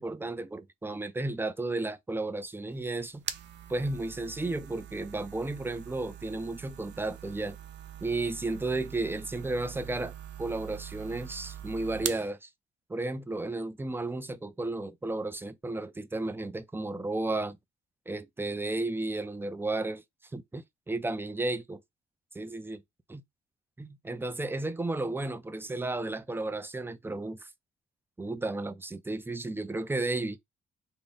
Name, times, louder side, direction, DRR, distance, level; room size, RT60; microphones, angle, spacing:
voice 1, 0.0-3.2 3.7-7.6 8.0-10.1 10.4-12.5 12.9-17.6 18.1-20.0 20.3-21.8 22.3-22.8 23.1-23.2 23.8-27.5 28.2-30.4, right 2 dB, 10° right, 0.4 m, -33 dB
sound 1, 2.7-12.3, right 10 dB, 65° right, 0.6 m, -43 dB
3.6 x 2.1 x 4.0 m
cardioid pair, 90°, 20 cm